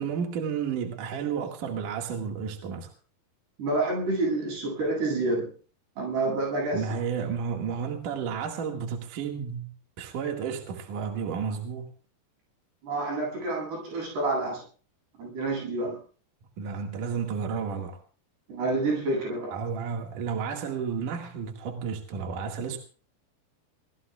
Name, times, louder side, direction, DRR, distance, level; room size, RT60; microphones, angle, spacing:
voice 1, 0.0-2.9 6.7-9.7 10.0-11.9 16.6-18.0 19.5-22.8, right 6 dB, 55° right, 3.3 m, -32 dB
voice 2, 3.6-5.5 6.0-7.0 12.8-14.6 15.2-16.0 18.5-19.5, right 2 dB, 80° right, 10.0 m, -28 dB
24.0 x 20.5 x 2.4 m
omnidirectional pair, 4.7 m